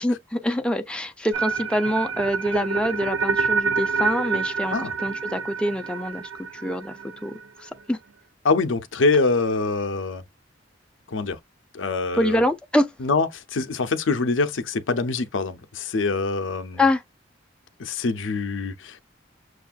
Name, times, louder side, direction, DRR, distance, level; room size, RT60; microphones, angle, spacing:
voice 1, 0.0-6.3 6.6-6.9 7.2-7.3 7.6-8.0 12.2-12.9 16.8-17.0, left 1 dB, 5° left, 0.5 m, -25 dB
sound 1, 1.3-7.4, right 5 dB, 75° right, 0.6 m, -27 dB
voice 2, 8.4-10.2 11.1-11.4 11.7-12.4 13.0-16.8 17.8-19.0, left 3 dB, 85° left, 0.6 m, -24 dB
6.3 x 2.4 x 2.3 m
head